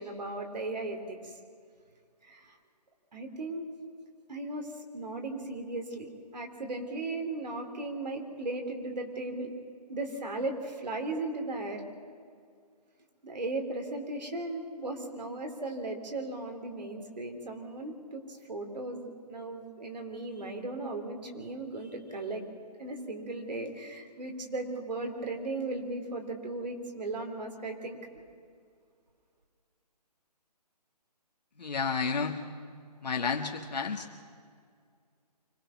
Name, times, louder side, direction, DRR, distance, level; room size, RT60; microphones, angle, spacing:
voice 1, 0.0-1.3 2.2-2.5 3.1-3.7 4.3-9.5 9.9-11.8 13.2-22.4 22.8-28.0, right 2 dB, 80° right, 3 dB, 3.6 m, -37 dB
voice 2, 31.6-32.4 33.0-34.1, left 5 dB, 80° left, 1 dB, 1.7 m, -31 dB
25.0 x 19.0 x 5.9 m, 2.2 s
hypercardioid pair, 175°, 21 cm